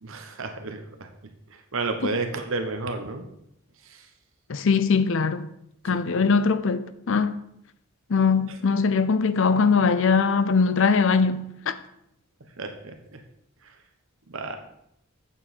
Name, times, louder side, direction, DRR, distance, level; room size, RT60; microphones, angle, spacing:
voice 1, 0.0-1.1 1.5-3.3 3.9-4.0 5.9-6.2 12.6-13.2 14.3-14.6, right 3 dB, 65° right, 1.2 m, -32 dB
voice 2, 4.5-5.5 5.8-7.4 8.1-11.8, left 5 dB, 60° left, 0.5 m, -21 dB
8.6 x 7.2 x 4.3 m
head